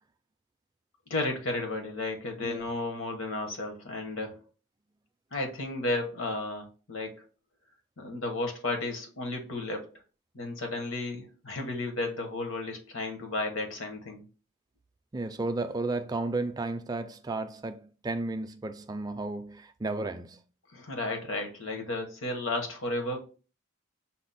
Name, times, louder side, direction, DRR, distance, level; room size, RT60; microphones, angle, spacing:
voice 1, 1.1-4.4 5.3-7.2 8.0-9.9 10.3-14.2 20.7-23.2, left 2 dB, 70° left, 1.1 m, -33 dB
voice 2, 15.1-20.4, right 2 dB, 20° right, 0.3 m, -33 dB
5.7 x 2.1 x 4.0 m
head